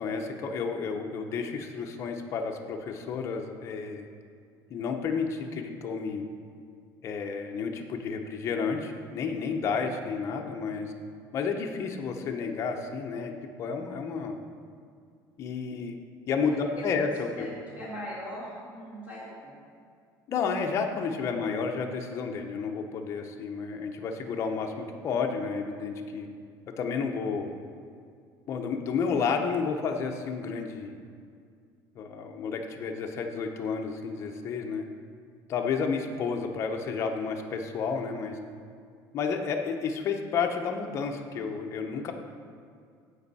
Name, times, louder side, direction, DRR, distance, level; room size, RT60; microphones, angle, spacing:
voice 1, 0.0-4.1 4.7-6.2 7.0-10.9 11.3-13.3 13.6-14.4 15.4-16.0 16.3-17.5 20.3-26.3 26.8-27.5 28.5-30.9 31.9-34.9 35.5-38.4 39.1-42.1, left 5 dB, 35° left, 3 dB, 0.7 m, -31 dB
voice 2, 16.4-16.9 17.3-19.6 21.2-21.4, equal, 15° right, -9 dB, 1.9 m, -41 dB
15.0 x 5.3 x 4.1 m, 2.2 s
cardioid pair, 180°, 8 cm